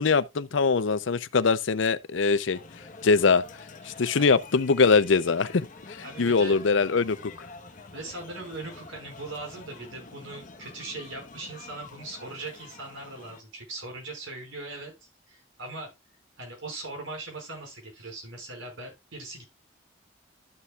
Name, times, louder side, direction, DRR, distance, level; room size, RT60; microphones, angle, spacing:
voice 1, 0.0-2.6 3.0-3.4 3.9-5.7 6.2-7.3, left 4 dB, 70° left, 0.6 m, -22 dB
sound 1, 2.5-13.4, left 3 dB, 45° left, 1.1 m, -47 dB
voice 2, 3.8-4.3 6.0-6.6 7.9-14.9 15.3-15.9 16.4-19.5, right 2 dB, 80° right, 5.2 m, -40 dB
12.5 x 6.9 x 2.4 m
head